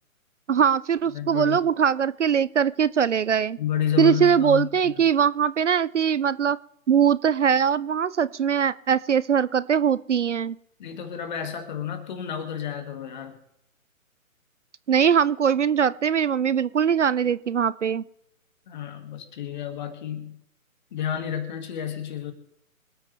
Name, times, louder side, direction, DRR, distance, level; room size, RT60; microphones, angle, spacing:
voice 1, 0.5-3.6 4.0-6.6 6.9-10.6 14.9-18.0, right 7 dB, 60° right, 18 dB, 0.5 m, -21 dB
voice 2, 1.1-1.6 3.6-4.9 10.8-13.3 18.7-20.4 20.9-22.3, left 9 dB, 35° left, 8 dB, 2.0 m, -30 dB
25.5 x 8.9 x 3.3 m, 0.77 s
figure-of-eight pair, 135°, 42 cm